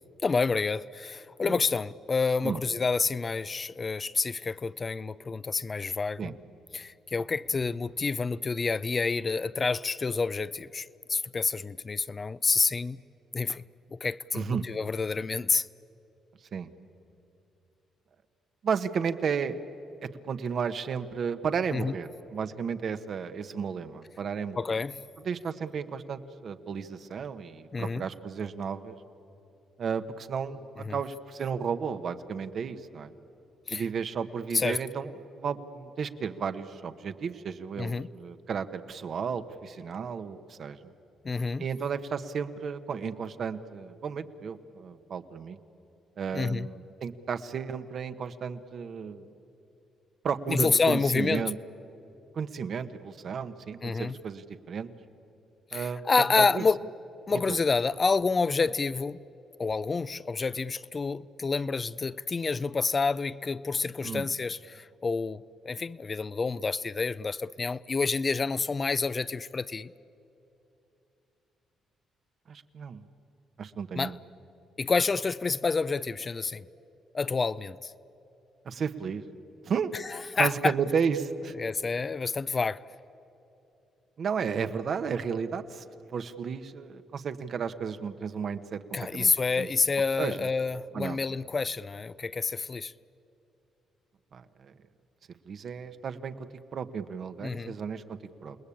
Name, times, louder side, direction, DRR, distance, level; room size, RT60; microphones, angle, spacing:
voice 1, 0.2-6.3 6.7-13.0 13.3-13.6 13.9-15.7 21.7-21.9 24.6-25.0 27.7-28.1 30.8-31.0 33.7-33.8 34.5-34.8 37.8-38.1 41.2-41.7 46.3-46.7 50.5-51.4 53.8-54.2 55.7-56.8 57.3-59.2 59.6-69.9 73.9-74.1 74.8-76.7 77.1-77.9 79.9-80.7 81.6-82.8 88.9-92.9 97.4-97.7, left 4 dB, 35° left, 0.5 m, -28 dB
voice 2, 14.3-14.6 16.5-16.7 18.6-19.6 20.2-24.8 25.2-29.0 29.8-33.1 33.7-40.8 41.6-45.6 46.2-49.3 50.2-51.6 52.3-54.9 55.7-56.6 57.3-57.6 64.0-64.3 72.5-73.0 73.6-74.1 78.6-79.2 79.6-79.9 80.4-81.5 84.2-85.8 86.1-88.8 89.1-89.7 90.2-90.5 90.9-91.2 94.3-94.7 95.5-96.3 96.7-98.6, right 6 dB, 55° right, 1.2 m, -33 dB
28.5 x 19.5 x 8.6 m
cardioid pair, 90°, 0 cm